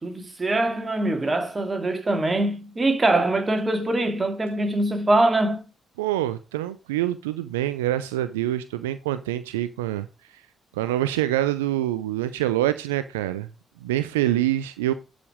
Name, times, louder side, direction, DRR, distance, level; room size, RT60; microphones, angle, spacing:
voice 1, 0.0-5.6, right 2 dB, 30° right, 2.5 m, -23 dB
voice 2, 6.0-10.1 10.3-10.4 10.7-13.5 13.8-14.9, right 13 dB, 85° right, 0.4 m, -25 dB
11.0 x 5.1 x 4.9 m
hypercardioid pair, 40°, 0 cm